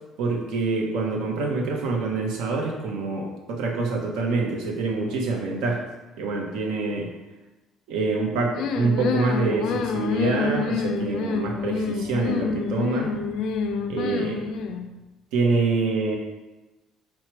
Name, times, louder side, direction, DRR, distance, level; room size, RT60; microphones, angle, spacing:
voice 1, 0.2-5.8 6.2-7.1 7.9-13.1 13.9-14.4 15.3-16.2, right 3 dB, 80° right, 1 dB, 0.8 m, -26 dB
sound 1, 8.5-14.9, left 5 dB, 70° left, 0.3 m, -27 dB
4.5 x 2.1 x 4.4 m, 1.1 s
cardioid pair, 110°, 0 cm